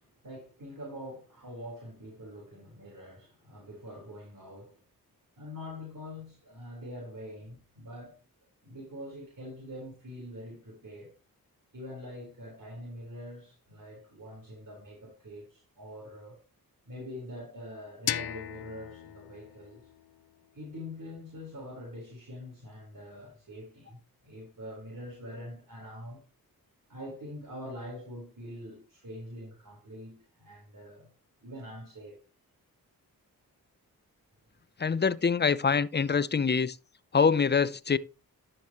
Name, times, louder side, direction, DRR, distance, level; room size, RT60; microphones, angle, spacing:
voice 1, 0.0-4.7 5.4-8.2 8.6-11.1 11.7-16.4 16.9-19.9 20.5-26.2 26.9-31.1 31.4-32.2, left 1 dB, 60° right, 4.3 m, -44 dB
sound 1, 18.1-20.9, left 12 dB, 85° left, 0.5 m, -38 dB
voice 2, 34.8-36.8 37.1-38.0, left 5 dB, 30° left, 0.6 m, -25 dB
11.5 x 6.6 x 3.0 m
cardioid pair, 45°, 37 cm